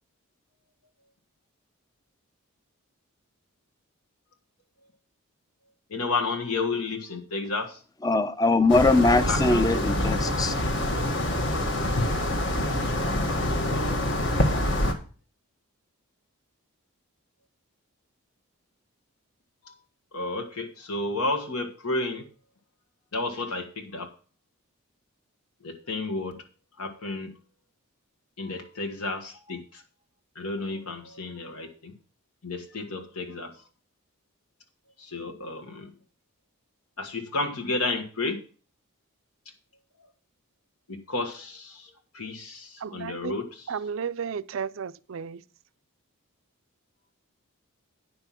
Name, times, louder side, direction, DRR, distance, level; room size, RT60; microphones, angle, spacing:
voice 1, 5.9-7.8 9.3-10.2 13.7-13.9 19.6-19.7 20.1-22.2 23.1-24.1 25.6-26.3 26.8-27.3 28.4-29.8 30.3-31.9 32.4-33.5 35.0-35.9 37.0-38.4 40.9-43.4, left 3 dB, 80° left, 1.6 m, -32 dB
voice 2, 8.0-10.6, left 2 dB, 15° left, 0.5 m, -21 dB
sound 1, 8.7-14.9, left 1 dB, 55° left, 1.4 m, -26 dB
voice 3, 42.8-43.4 43.7-45.4, right 6 dB, 60° right, 0.4 m, -33 dB
9.8 x 5.7 x 5.8 m
head